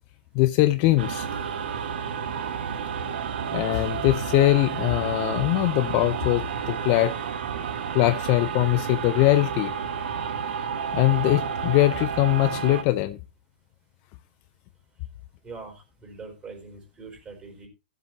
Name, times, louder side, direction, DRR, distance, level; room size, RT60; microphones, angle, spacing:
voice 1, 0.3-1.3 3.5-7.1 7.9-9.7 10.9-13.2, left 17 dB, 35° left, 0.6 m, -22 dB
sound 1, 1.0-12.8, right 7 dB, 65° right, 1.5 m, -31 dB
voice 2, 15.4-17.7, right 4 dB, 15° right, 4.5 m, -42 dB
16.5 x 7.6 x 3.0 m
hypercardioid pair, 140°, 6 cm